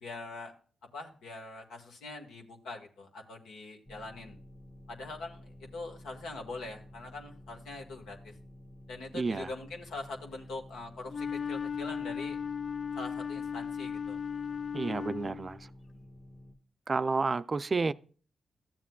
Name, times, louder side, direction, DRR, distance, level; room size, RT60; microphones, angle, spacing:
voice 1, 0.0-0.5 0.9-4.4 4.9-8.3 8.9-12.4 12.9-14.2, left 3 dB, 85° left, 1.4 m, -43 dB
sound 1, 3.9-16.6, left 1 dB, 20° left, 1.1 m, -52 dB
voice 2, 9.1-9.5 14.7-15.7 16.9-17.9, right 4 dB, 45° right, 0.4 m, -30 dB
Wind instrument woodwind instrument, 11.1-15.6, left 7 dB, 55° left, 0.5 m, -36 dB
13.5 x 7.4 x 2.3 m
supercardioid pair, 50°, 0 cm